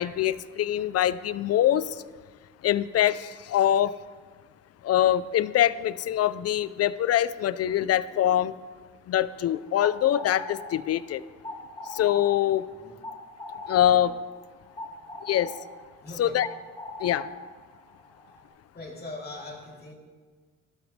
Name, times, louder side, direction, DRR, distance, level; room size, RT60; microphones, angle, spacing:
voice 1, 0.0-1.9 2.6-3.9 4.8-8.5 9.1-11.2 11.9-12.7 13.7-14.1 15.3-15.5 16.2-16.5 17.0-17.3, left 11 dB, 55° left, 17 dB, 0.5 m, -24 dB
sound 1, 9.6-18.5, left 2 dB, 15° left, 2.1 m, -41 dB
voice 2, 14.8-15.2 16.0-16.4 18.7-19.9, left 2 dB, 30° left, -2 dB, 2.9 m, -42 dB
12.0 x 12.0 x 3.2 m, 1.5 s
cardioid pair, 90°, 30 cm